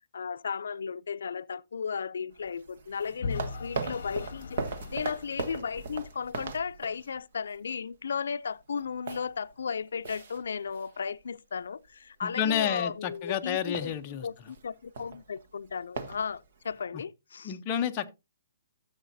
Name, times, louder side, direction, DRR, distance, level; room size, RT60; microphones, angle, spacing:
voice 1, 0.1-4.6 4.9-13.9 14.2-17.5, left 6 dB, 90° left, 0.4 m, -35 dB
sound 1, 2.3-7.6 7.9-8.1 8.5-11.2 11.5-11.9 12.4-12.8 13.0-13.2 13.5-16.8, right 4 dB, 50° right, 1.1 m, -39 dB
Vehicle / Engine, 3.2-6.2, left 4 dB, 60° left, 0.8 m, -39 dB
voice 2, 12.2-14.3 17.4-18.1, left 9 dB, 20° left, 0.6 m, -30 dB
14.5 x 7.1 x 2.6 m
hypercardioid pair, 175°, 0 cm